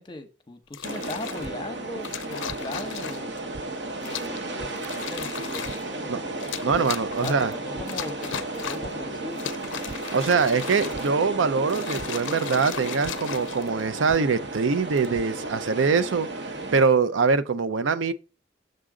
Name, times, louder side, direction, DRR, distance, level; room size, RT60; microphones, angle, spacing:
voice 1, 0.0-3.3 4.0-6.4 7.2-9.5, left 1 dB, 25° left, 0.8 m, -38 dB
sound 1, 0.7-1.5 2.0-3.4 4.0-4.4 4.8-5.9 6.4-7.5 7.9-9.0 9.3-11.2 11.6-14.0 14.8-15.1, left 9 dB, 75° left, 0.4 m, -36 dB
sound 2, 0.8-16.8, right 2 dB, 65° right, 1.0 m, -34 dB
sound 3, 1.4-1.5 2.5-2.6 3.5-3.6 4.6-4.7 5.6-5.7 6.7-6.8 7.3-7.4 7.8-7.9 8.8-8.9 9.9-10.0 10.9-11.0 12.0-12.1 13.0-13.1 14.1-14.2 14.9-15.2, right 2 dB, 25° right, 0.3 m, -39 dB
voice 2, 6.6-7.5 10.1-18.1, right 5 dB, 80° right, 0.5 m, -23 dB
6.7 x 3.7 x 4.8 m
head